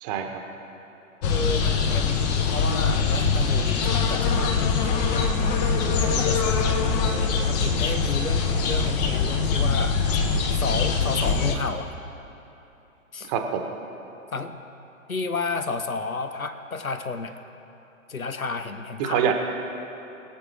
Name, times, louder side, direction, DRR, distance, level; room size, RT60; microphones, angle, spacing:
voice 1, 1.2-7.1 7.4-10.0 10.5-11.9 13.1-13.3 14.3-14.6 15.1-17.4 18.1-19.2, left 4 dB, 85° left, 9 dB, 1.1 m, -32 dB
sound 1, 1.2-11.5, left 5 dB, 30° left, 1.1 m, -23 dB
voice 2, 13.3-13.6 19.0-19.3, right 8 dB, 30° right, 4 dB, 1.2 m, -24 dB
22.5 x 7.7 x 3.4 m, 3.0 s
figure-of-eight pair, 120°, 41 cm